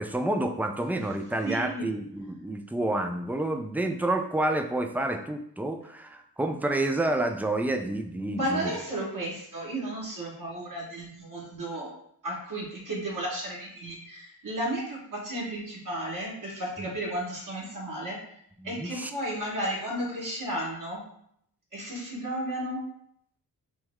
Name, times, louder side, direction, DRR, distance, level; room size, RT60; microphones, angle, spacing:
voice 1, 0.0-8.7 16.8-16.9 18.6-19.1, right 1 dB, 5° right, 5 dB, 0.4 m, -29 dB
voice 2, 1.4-1.9 8.3-11.9 12.2-18.2 18.6-21.0 21.7-22.8, right 1 dB, 50° right, -4 dB, 1.7 m, -33 dB
6.1 x 2.0 x 3.6 m, 0.70 s
cardioid pair, 65°, 40 cm